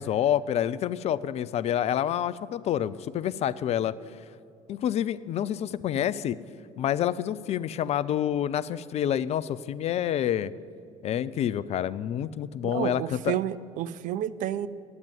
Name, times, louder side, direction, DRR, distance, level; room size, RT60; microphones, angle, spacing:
voice 1, 0.0-3.9 4.7-6.4 6.8-10.5 11.0-13.4, left 10 dB, 35° left, 17 dB, 0.4 m, -28 dB
voice 2, 12.6-14.7, right 11 dB, 45° right, 14 dB, 0.5 m, -30 dB
9.6 x 8.8 x 9.6 m, 2.3 s
figure-of-eight pair, 60°, 18 cm